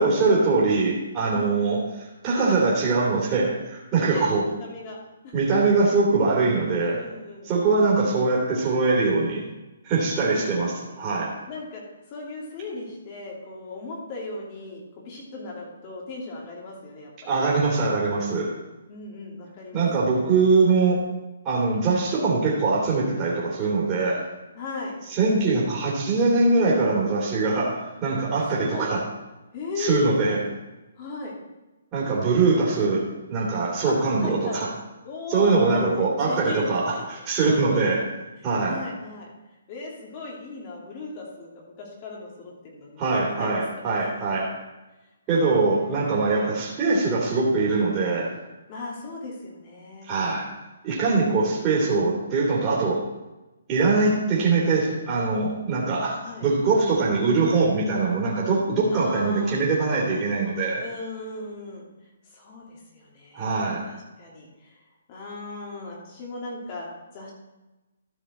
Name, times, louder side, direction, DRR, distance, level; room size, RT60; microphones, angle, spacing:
voice 1, 0.0-4.4 5.3-7.0 7.4-9.4 9.8-11.3 17.2-18.5 19.7-21.0 21.4-24.2 25.1-29.0 29.8-30.4 31.9-33.0 33.3-34.7 35.3-38.0 38.4-38.8 43.0-44.5 45.3-48.3 50.0-50.5 50.8-53.0 53.7-60.8 63.3-63.8, right 3 dB, 20° right, -5 dB, 3.1 m, -22 dB
voice 2, 4.1-5.0 5.2-5.3 6.9-7.7 10.2-11.0 11.5-11.8 12.1-17.4 18.9-20.2 24.5-25.0 28.5-28.8 29.5-30.2 31.0-31.3 33.8-34.6 35.0-37.0 37.4-38.1 38.6-39.3 39.7-43.6 45.3-46.1 48.7-50.1 51.1-51.4 56.2-56.5 58.9-59.6 60.8-61.9 62.3-64.8 65.1-66.9 67.1-67.3, left 3 dB, 30° left, -2 dB, 2.8 m, -37 dB
13.5 x 5.9 x 4.3 m, 1.0 s
hypercardioid pair, 160°, 0 cm